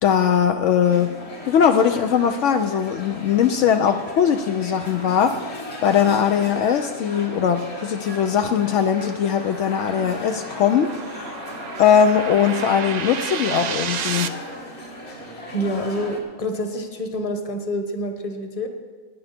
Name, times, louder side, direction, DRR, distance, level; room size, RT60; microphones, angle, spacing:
voice 1, 0.0-1.1 1.5-11.4 11.8-14.3, left 8 dB, 75° left, 7 dB, 0.9 m, -20 dB
sound 1, 0.8-16.2, left 1 dB, 55° left, 2.0 m, -37 dB
sound 2, 7.4-14.3, right 7 dB, 60° right, 0.4 m, -33 dB
voice 2, 15.5-18.7, equal, 30° left, 5 dB, 1.2 m, -27 dB
16.5 x 9.9 x 4.3 m, 1.4 s
omnidirectional pair, 1.3 m